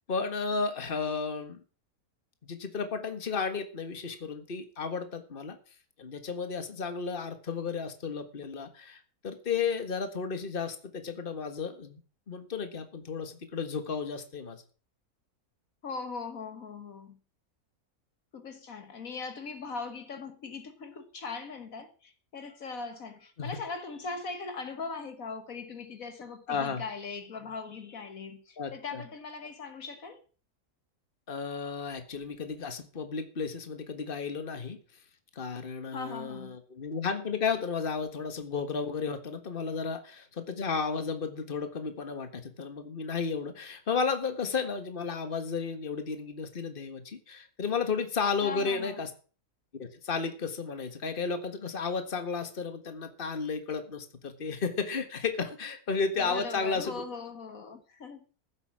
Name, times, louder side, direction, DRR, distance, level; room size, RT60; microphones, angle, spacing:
voice 1, 0.1-1.6 2.4-5.6 6.0-12.0 12.3-14.6 23.4-23.6 26.5-26.8 28.6-29.0 31.3-34.8 35.3-49.1 49.8-57.0, left 5 dB, 35° left, 1.7 m, -33 dB
voice 2, 15.8-17.2 18.3-30.2 35.9-36.6 48.4-49.0 56.2-58.2, left 4 dB, 65° left, 1.7 m, -40 dB
15.0 x 8.1 x 6.3 m
omnidirectional pair, 1.6 m